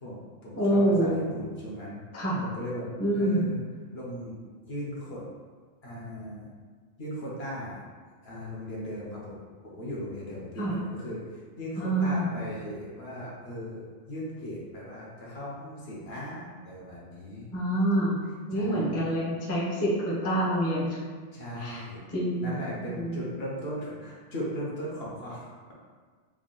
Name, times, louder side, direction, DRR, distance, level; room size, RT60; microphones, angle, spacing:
voice 1, 0.0-2.0 2.4-3.6 3.9-4.4 4.6-5.2 5.8-6.5 7.0-7.8 8.2-17.5 18.5-19.0 21.3-22.0 22.4-25.5, equal, 60° left, -5 dB, 1.1 m, -38 dB
voice 2, 0.6-1.3 2.1-2.4 3.0-3.5 10.6-10.8 11.8-12.3 17.5-18.2 18.5-21.0 21.6-21.8 22.1-23.3, right 1 dB, 15° left, -7 dB, 0.6 m, -26 dB
3.6 x 2.3 x 3.8 m, 1.5 s
omnidirectional pair, 1.3 m